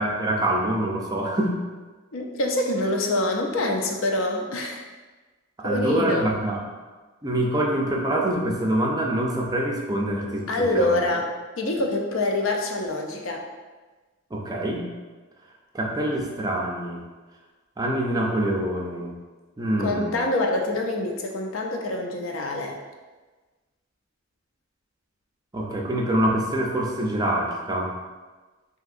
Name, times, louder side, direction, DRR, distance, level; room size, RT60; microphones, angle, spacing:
voice 1, 0.0-1.6 5.6-6.6 7.2-11.0 14.3-14.9 15.7-17.0 17.8-19.1 19.6-20.2 25.5-27.9, right 1 dB, 20° right, -1 dB, 0.4 m, -25 dB
voice 2, 2.1-4.9 5.6-6.3 10.5-11.3 11.6-13.4 19.8-22.8, left 1 dB, 90° left, 2 dB, 0.5 m, -25 dB
3.5 x 2.8 x 2.4 m, 1.3 s
head